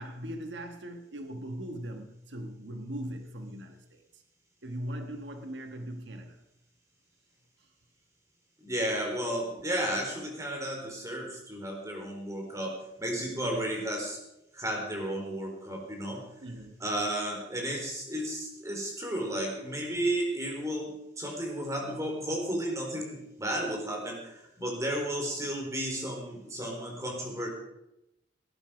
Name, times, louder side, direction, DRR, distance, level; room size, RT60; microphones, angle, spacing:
voice 1, 0.0-4.2 4.6-6.4 13.4-13.7 16.4-16.8, equal, 90° right, 5 dB, 1.4 m, -40 dB
voice 2, 8.6-14.2 14.5-16.2 16.8-27.5, right 1 dB, 20° right, 0 dB, 4.2 m, -33 dB
18.0 x 11.0 x 5.1 m, 0.86 s
head